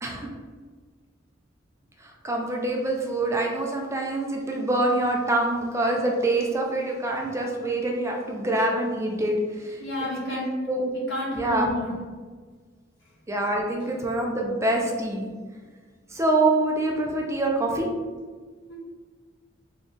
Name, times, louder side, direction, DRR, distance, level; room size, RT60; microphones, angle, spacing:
voice 1, 0.0-0.3 2.0-10.4 10.7-10.9 11.3-11.7 13.3-15.3 16.1-17.9, right 2 dB, 15° right, 0 dB, 0.5 m, -25 dB
voice 2, 9.8-10.6 10.9-11.9 18.7-18.8, left 1 dB, 70° left, -6 dB, 1.5 m, -30 dB
3.9 x 2.3 x 3.6 m, 1.5 s
head